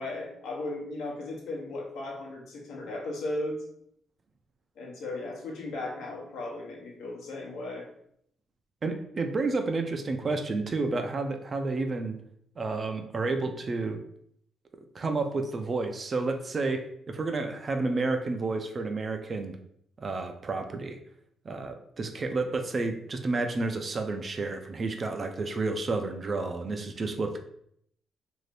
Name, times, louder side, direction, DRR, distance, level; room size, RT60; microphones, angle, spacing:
voice 1, 0.0-3.6 4.8-7.9, left 2 dB, 85° left, -1 dB, 0.8 m, -36 dB
voice 2, 8.8-12.2 12.6-14.0 14.9-19.6 20.0-21.0 21.5-27.4, right 3 dB, 35° right, 6 dB, 0.4 m, -30 dB
2.6 x 2.4 x 3.2 m, 0.69 s
cardioid pair, 115°, 0 cm